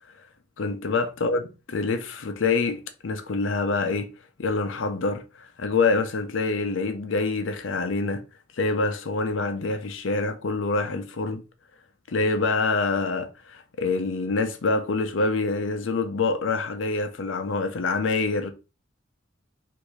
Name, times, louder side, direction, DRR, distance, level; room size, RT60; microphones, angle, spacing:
voice 1, 0.6-1.4 1.7-4.1 4.4-8.2 8.6-11.4 12.1-18.5, left 3 dB, 75° left, 0.6 m, -26 dB
3.4 x 2.6 x 3.1 m
head